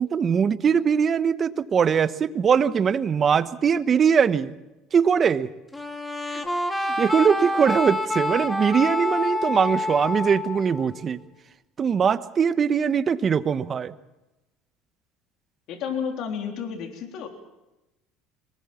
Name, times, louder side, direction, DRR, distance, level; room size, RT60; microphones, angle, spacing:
voice 1, 0.0-4.5 4.9-5.5 6.3-6.4 6.8-11.2 11.8-13.9, right 7 dB, 35° right, 13 dB, 1.0 m, -21 dB
sound 1, 5.7-11.2, left 1 dB, 10° left, 2.1 m, -28 dB
voice 2, 15.7-17.3, left 7 dB, 60° left, 3 dB, 3.6 m, -31 dB
23.5 x 19.5 x 7.3 m, 0.99 s
supercardioid pair, 120°, 0 cm